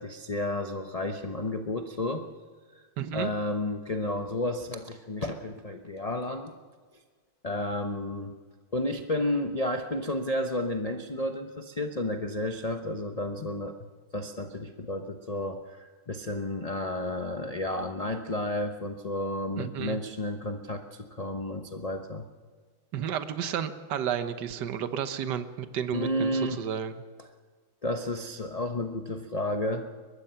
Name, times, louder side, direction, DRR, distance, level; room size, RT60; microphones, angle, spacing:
voice 1, 0.0-2.3 3.1-6.5 7.4-8.4 8.7-13.8 14.1-22.3 25.9-26.6 27.8-29.9, left 1 dB, 30° left, 5 dB, 0.6 m, -32 dB
voice 2, 3.0-3.3 19.5-20.0 22.9-26.9, right 8 dB, 60° right, 10 dB, 1.6 m, -32 dB
23.0 x 20.5 x 5.8 m, 1.5 s
omnidirectional pair, 2.3 m